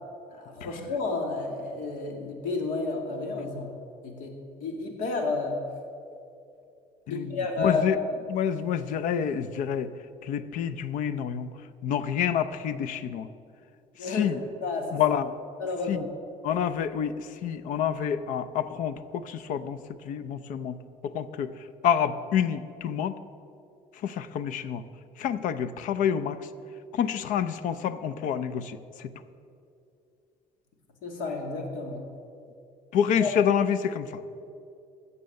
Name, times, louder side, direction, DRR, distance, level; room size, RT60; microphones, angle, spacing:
voice 1, 0.3-3.7 4.0-4.3 4.6-5.6 7.1-7.8 14.0-15.2 15.6-16.1 31.0-32.0 33.2-33.3, left 3 dB, 90° left, 3 dB, 2.1 m, -31 dB
voice 2, 7.1-8.0 8.3-9.9 10.2-11.5 11.8-13.3 14.1-14.4 14.9-15.3 15.9-16.0 16.4-17.1 17.4-20.8 21.0-21.5 21.8-23.2 24.0-24.8 25.2-26.4 26.9-28.8 32.9-34.2, left 8 dB, 70° left, 14 dB, 0.6 m, -28 dB
16.5 x 6.9 x 6.5 m, 2.6 s
cardioid pair, 140°, 14 cm